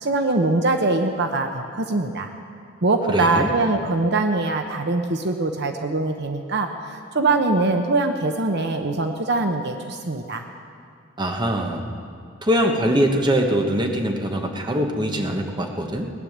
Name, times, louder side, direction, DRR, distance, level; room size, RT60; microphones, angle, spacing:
voice 1, 0.0-2.3 2.8-10.4, right 2 dB, 60° right, 6 dB, 0.8 m, -23 dB
voice 2, 3.1-3.5 11.2-11.9 12.4-16.1, equal, 25° right, 3 dB, 1.3 m, -22 dB
18.5 x 10.0 x 7.3 m, 2.3 s
head